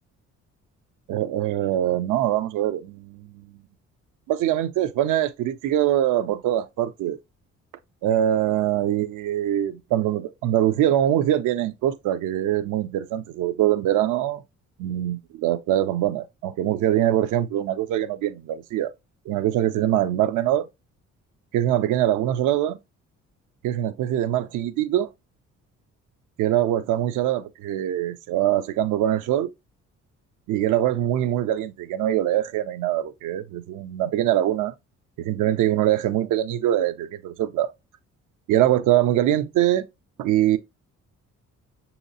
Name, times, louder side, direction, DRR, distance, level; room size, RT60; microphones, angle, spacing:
voice 1, 1.1-3.6 4.3-7.2 8.0-14.4 14.8-18.9 19.3-20.7 21.5-22.8 23.6-25.1 26.4-29.5 30.5-34.7 35.2-37.7 38.5-39.9 40.2-40.6, right 12 dB, 80° right, 0.5 m, -23 dB
6.4 x 2.8 x 2.6 m
cardioid pair, 90°, 30 cm